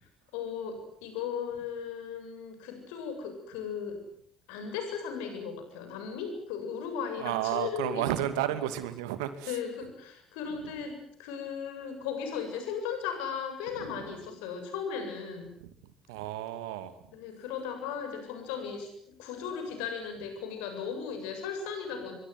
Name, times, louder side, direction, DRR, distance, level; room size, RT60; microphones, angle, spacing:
voice 1, 0.3-4.0 4.5-8.2 9.4-15.5 17.1-22.1, left 6 dB, 70° left, 6 dB, 7.6 m, -36 dB
voice 2, 7.2-9.5 13.8-14.1 16.1-16.9, right 12 dB, 70° right, 11 dB, 2.4 m, -32 dB
26.0 x 24.5 x 7.9 m, 0.64 s
figure-of-eight pair, 50°, 3 cm